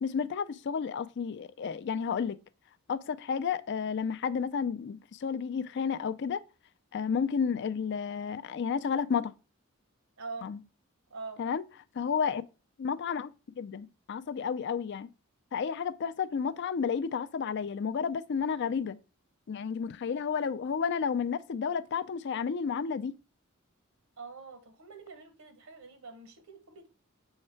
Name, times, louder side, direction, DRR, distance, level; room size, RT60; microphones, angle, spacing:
voice 1, 0.0-2.4 2.9-6.4 6.9-9.3 10.4-10.6 11.4-11.6 12.0-12.4 12.8-15.1 15.5-19.0 19.5-23.1, left 6 dB, 55° left, 0.4 m, -31 dB
voice 2, 10.2-10.5 11.1-11.4 24.2-26.9, right 4 dB, 80° right, 1.1 m, -44 dB
6.5 x 3.3 x 4.4 m
head